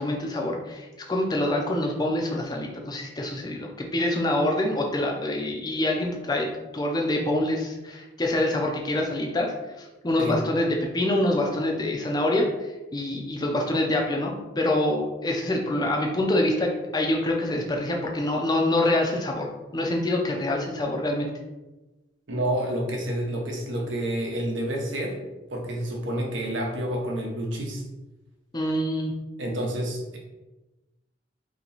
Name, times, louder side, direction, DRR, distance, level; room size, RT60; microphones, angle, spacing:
voice 1, 0.0-6.5 6.7-21.3 28.5-29.1, left 1 dB, 20° left, 0 dB, 0.4 m, -26 dB
voice 2, 22.3-25.2 25.5-27.8 29.4-30.2, right 1 dB, 75° right, 0 dB, 0.8 m, -29 dB
2.9 x 2.8 x 4.0 m, 1.1 s
head